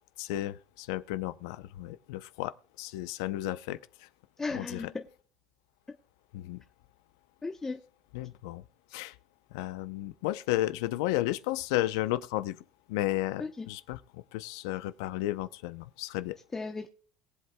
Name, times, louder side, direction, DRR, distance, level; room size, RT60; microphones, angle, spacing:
voice 1, 0.2-4.1 4.5-4.9 6.3-6.6 8.1-8.6 8.9-9.2 9.5-12.6 12.9-16.4, left 15 dB, 85° left, 0.6 m, -33 dB
voice 2, 4.4-5.1 7.4-7.8 13.4-13.7 16.5-16.9, left 3 dB, 20° left, 0.8 m, -35 dB
22.0 x 8.0 x 2.2 m
supercardioid pair, 100°, 2 cm